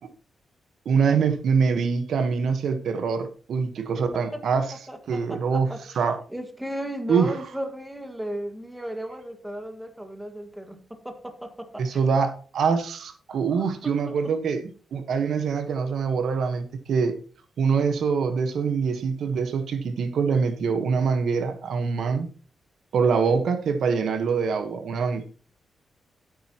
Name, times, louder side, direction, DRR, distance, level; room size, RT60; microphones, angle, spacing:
voice 1, 0.8-4.7 5.1-5.7 5.9-6.2 7.1-7.3 11.8-14.6 14.9-17.2 17.6-22.3 22.9-25.3, right 5 dB, 70° right, 1.2 m, -24 dB
voice 2, 4.9-6.0 6.3-12.0 13.5-14.2, right 1 dB, 5° right, 1.8 m, -35 dB
13.0 x 8.9 x 3.0 m
wide cardioid pair, 130°, 0 cm